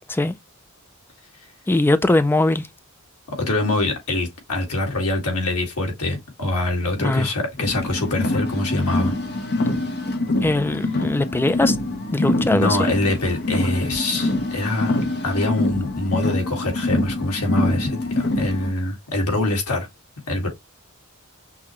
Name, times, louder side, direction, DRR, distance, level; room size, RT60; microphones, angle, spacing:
voice 1, 1.7-2.7 7.0-7.3 10.4-11.8 12.1-12.9, left 2 dB, 10° left, 0.3 m, -20 dB
voice 2, 3.4-9.1 12.5-15.0 15.2-19.9 20.3-20.5, left 2 dB, 85° left, 1.8 m, -24 dB
Car, 7.6-18.7, left 2 dB, 50° left, 0.9 m, -25 dB
5.8 x 2.2 x 3.0 m
head